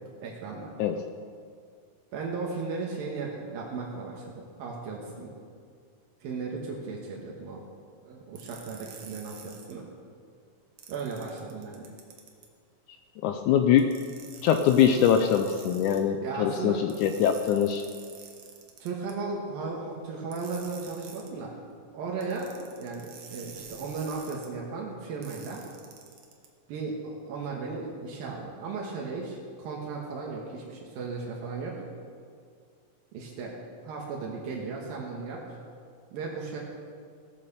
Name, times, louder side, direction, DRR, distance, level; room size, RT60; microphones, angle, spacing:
voice 1, 0.2-0.7 2.1-5.3 6.2-7.6 8.0-9.8 10.9-11.9 16.2-16.8 18.8-21.5 21.9-25.6 26.7-31.8 33.1-33.5 33.8-35.6 36.1-36.6, right 4 dB, 80° right, -2 dB, 3.2 m, -36 dB
sound 1, 8.3-9.7 10.8-12.5 13.8-16.0 16.9-19.1 20.3-21.3 22.2-24.5 25.2-26.5, right 6 dB, 55° right, 2.1 m, -48 dB
voice 2, 13.2-14.0 14.4-17.8, left 8 dB, 80° left, 7 dB, 1.8 m, -23 dB
16.5 x 8.5 x 6.7 m, 2.2 s
omnidirectional pair, 4.1 m